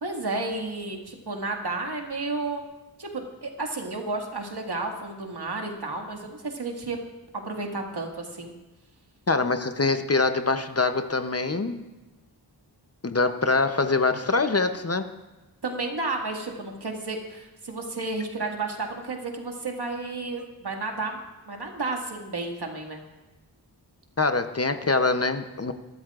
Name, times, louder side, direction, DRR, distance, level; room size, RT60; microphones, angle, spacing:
voice 1, 0.0-2.6 3.0-7.0 7.3-8.5 15.6-21.2 21.5-23.0, right 3 dB, 70° right, 1 dB, 2.0 m, -32 dB
voice 2, 9.3-11.8 13.0-15.1 24.2-25.7, left 3 dB, 35° left, 8 dB, 0.8 m, -24 dB
22.5 x 13.0 x 2.5 m, 1.1 s
wide cardioid pair, 75°, 41 cm